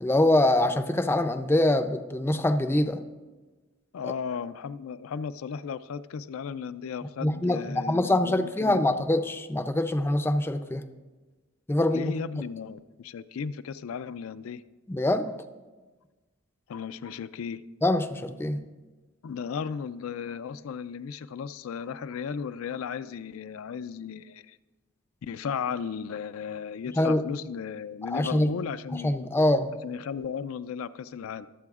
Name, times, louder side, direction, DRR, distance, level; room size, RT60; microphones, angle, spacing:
voice 1, 0.0-3.0 4.0-4.1 7.2-10.8 11.7-12.1 14.9-15.4 17.8-18.6 27.0-27.2 28.1-28.5 28.9-29.7, left 1 dB, 10° left, 9 dB, 0.4 m, -24 dB
voice 2, 3.9-8.9 11.9-14.6 16.7-17.6 19.2-24.6 25.2-29.3 29.8-31.5, left 6 dB, 85° left, 13 dB, 0.4 m, -35 dB
22.5 x 7.7 x 2.4 m, 1.2 s
head